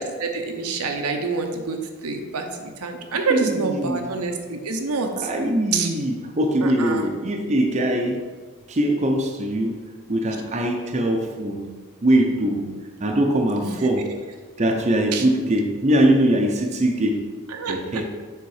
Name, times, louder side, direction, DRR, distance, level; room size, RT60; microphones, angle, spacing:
voice 1, 0.0-5.3 5.7-5.9 6.6-7.0 13.6-13.8 15.1-15.2 17.5-18.1, right 4 dB, 85° right, 4 dB, 0.8 m, -27 dB
voice 2, 3.1-4.1 5.2-8.2 8.7-9.8 10.1-11.7 12.0-12.7 13.0-14.1 14.6-17.2 17.7-18.0, right 1 dB, 30° right, 3 dB, 0.5 m, -22 dB
6.8 x 3.7 x 4.8 m, 1.5 s
head